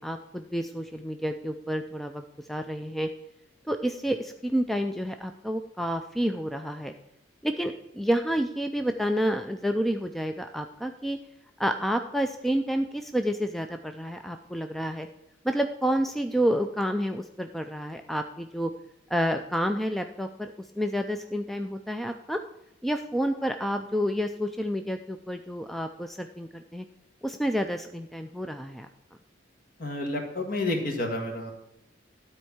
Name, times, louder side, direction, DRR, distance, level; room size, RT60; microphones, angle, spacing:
voice 1, 0.0-2.2 2.5-3.1 3.7-6.9 7.4-11.2 11.6-15.1 15.4-18.7 19.1-22.4 22.8-26.9 27.2-28.9, equal, ahead, 6 dB, 0.4 m, -29 dB
voice 2, 29.8-31.5, left 2 dB, 50° left, 3 dB, 1.8 m, -30 dB
12.5 x 4.5 x 7.1 m, 0.84 s
head